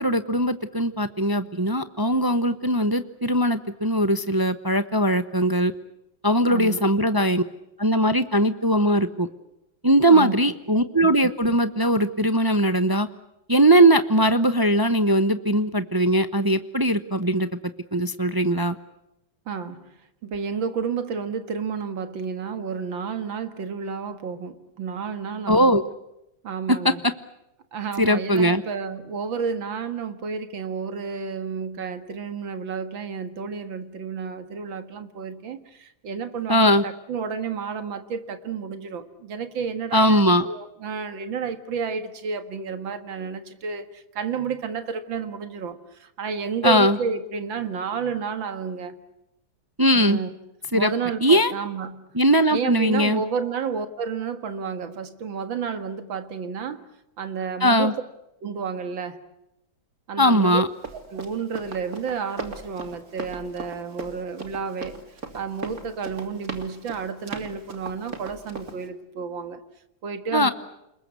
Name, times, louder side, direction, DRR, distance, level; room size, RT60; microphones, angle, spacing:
voice 1, 0.0-5.7 6.2-7.4 7.8-9.3 9.8-13.1 13.5-17.5 17.9-18.8 25.5-25.8 28.0-28.6 36.5-36.8 39.9-40.4 46.6-47.0 49.8-50.2 50.7-50.9 51.2-51.5 52.1-53.2 57.6-57.9 60.2-60.7 70.3-70.5, right 1 dB, 30° right, 10 dB, 0.4 m, -20 dB
voice 2, 6.5-6.8 10.1-10.4 19.5-19.9 20.2-25.8 26.4-27.0 27.7-48.9 50.0-50.3 50.7-52.1 52.5-56.8 57.2-57.9 58.4-59.2 60.1-60.6 60.9-65.0 65.3-69.6 70.0-70.5, right 6 dB, 80° right, 9 dB, 2.5 m, -31 dB
Run, 60.4-68.9, right 4 dB, 50° right, 3.2 m, -38 dB
29.5 x 21.0 x 8.3 m, 0.88 s
omnidirectional pair, 2.1 m